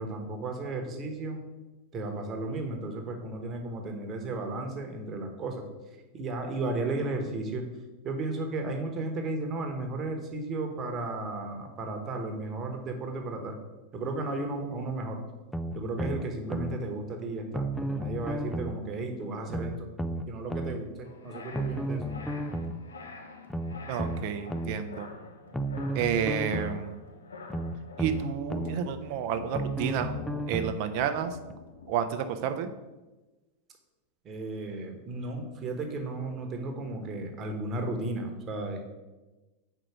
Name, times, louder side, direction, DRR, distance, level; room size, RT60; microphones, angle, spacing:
voice 1, 0.0-1.4 1.9-5.7 6.1-7.7 8.0-13.6 13.9-15.2 15.7-19.9 20.3-22.1 34.2-38.8, right 2 dB, 30° right, 3 dB, 1.2 m, -34 dB
sound 1, 15.5-16.8 17.5-18.8 19.5-20.8 21.5-22.8 23.5-24.8 25.5-26.8 27.5-28.8 29.5-30.8 31.5-31.6, right 1 dB, 5° left, 0.4 m, -33 dB
sound 2, 21.0-31.9, left 4 dB, 70° left, 0.8 m, -46 dB
voice 2, 23.9-25.1 25.9-27.0 28.0-30.2 30.5-31.4 31.9-32.7, right 8 dB, 45° right, 8 dB, 0.6 m, -30 dB
4.9 x 4.6 x 6.2 m, 1.1 s
figure-of-eight pair, 90°, 0 cm